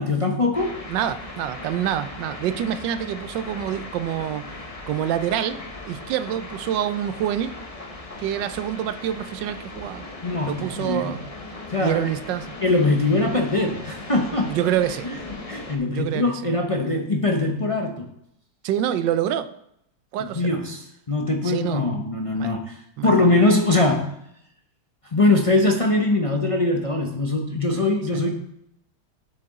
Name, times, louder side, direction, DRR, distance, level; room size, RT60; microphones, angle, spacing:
voice 1, 0.0-0.7 10.2-11.1 11.7-12.1 12.6-14.6 15.0-15.2 15.5-18.1 20.2-22.7 23.0-24.1 25.1-28.3, left 2 dB, 40° left, 2 dB, 0.4 m, -22 dB
sound 1, 0.5-15.8, left 2 dB, 25° left, 1.0 m, -38 dB
voice 2, 0.9-4.5 4.9-5.6 5.8-7.5 8.2-10.0 10.4-11.2 11.8-12.6 14.4-15.1 15.9-16.4 18.6-19.5 20.1-20.5 21.4-21.8 22.3-22.5 23.0-23.3 28.1-28.2, right 10 dB, 85° right, 12 dB, 1.3 m, -26 dB
12.0 x 6.8 x 3.6 m, 0.76 s
omnidirectional pair, 1.9 m